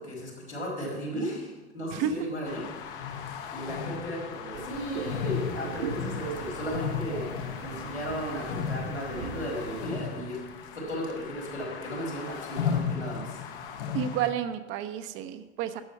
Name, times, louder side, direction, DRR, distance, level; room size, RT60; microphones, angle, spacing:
voice 1, 0.0-7.3 7.6-10.4 10.7-13.4, equal, 90° left, -5 dB, 4.8 m, -35 dB
sound 1, 2.5-14.3, left 7 dB, 50° left, 1.2 m, -35 dB
sound 2, 4.5-9.8, right 5 dB, 75° right, 1.3 m, -40 dB
voice 2, 13.9-15.8, right 9 dB, 35° right, 10 dB, 0.8 m, -30 dB
12.0 x 8.0 x 5.7 m, 1.2 s
figure-of-eight pair, 90°, 33 cm